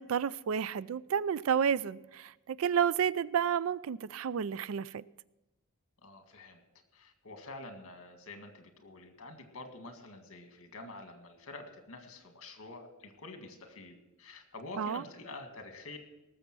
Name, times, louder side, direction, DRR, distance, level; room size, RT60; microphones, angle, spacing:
voice 1, 0.0-5.0 14.8-15.0, right 8 dB, 70° right, 19 dB, 0.4 m, -31 dB
voice 2, 6.0-6.6 6.9-16.0, left 2 dB, 70° left, 5 dB, 1.9 m, -47 dB
18.5 x 7.1 x 6.1 m, 0.98 s
head